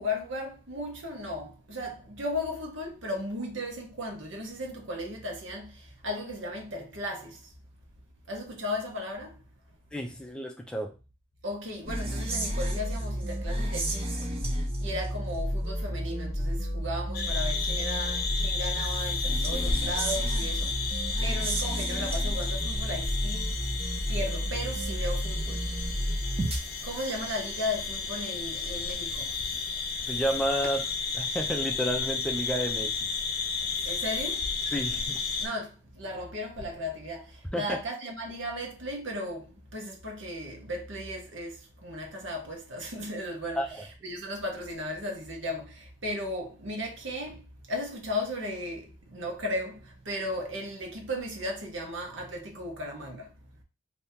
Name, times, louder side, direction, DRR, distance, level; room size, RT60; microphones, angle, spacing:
voice 1, 0.0-5.7 6.0-7.4 8.3-9.3 11.4-14.5 14.8-20.8 21.2-23.4 24.1-25.6 26.8-29.3 33.9-34.4 35.4-41.6 41.8-47.4 47.7-53.3, left 1 dB, 75° right, 1.1 m, -36 dB
voice 2, 9.9-10.9 30.1-32.9 34.7-35.2 37.5-37.8 43.6-43.9, equal, 5° left, 0.4 m, -31 dB
sound 1, 11.9-26.6, equal, 30° right, 0.7 m, -31 dB
sound 2, 17.1-35.5, left 4 dB, 50° left, 0.6 m, -33 dB
2.8 x 2.7 x 3.5 m
head